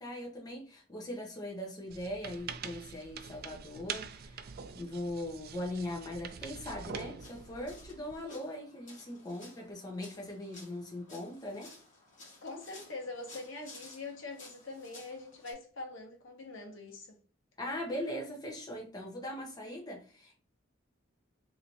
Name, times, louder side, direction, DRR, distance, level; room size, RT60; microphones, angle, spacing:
voice 1, 0.0-4.4 4.7-11.7 17.6-20.3, left 1 dB, 20° left, 0.8 m, -40 dB
sound 1, 1.9-8.2, right 6 dB, 50° right, 0.3 m, -45 dB
sound 2, 7.2-15.5, left 2 dB, 40° left, 1.4 m, -55 dB
voice 2, 12.4-17.2, left 3 dB, 70° left, 0.9 m, -44 dB
3.2 x 2.7 x 2.9 m
head